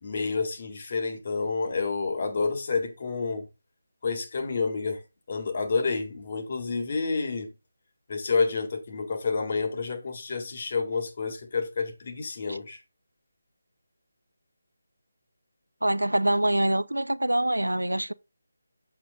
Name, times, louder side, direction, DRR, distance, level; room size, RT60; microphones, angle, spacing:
voice 1, 0.0-3.5 4.0-5.0 5.3-7.5 8.1-12.8, left 4 dB, 40° left, 1.9 m, -29 dB
voice 2, 15.8-18.1, right 1 dB, 85° right, 0.6 m, -25 dB
7.8 x 7.5 x 2.4 m
figure-of-eight pair, 155°, 0 cm